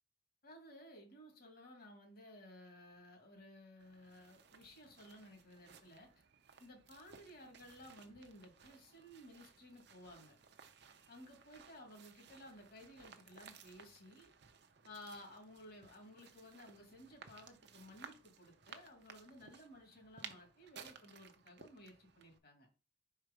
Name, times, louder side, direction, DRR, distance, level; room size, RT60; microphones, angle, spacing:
voice 1, 0.4-6.2 6.6-10.4 11.1-14.3 14.8-22.7, left 1 dB, 55° left, 3 dB, 2.0 m, -56 dB
sound 1, 3.8-22.4, right 6 dB, 60° right, 0.7 m, -59 dB
4.5 x 4.4 x 5.1 m, 0.34 s
head